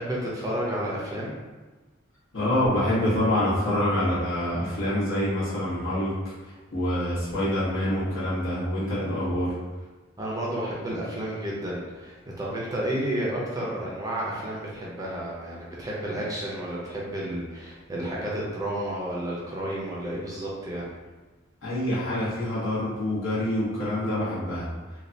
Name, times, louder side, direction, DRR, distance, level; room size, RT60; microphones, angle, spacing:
voice 1, 0.0-1.3 10.2-20.9, right 1 dB, 15° right, -5 dB, 0.5 m, -31 dB
voice 2, 2.3-6.2 6.7-9.5 21.6-24.7, left 1 dB, 75° left, -10 dB, 1.4 m, -26 dB
3.1 x 2.3 x 2.6 m, 1.2 s
head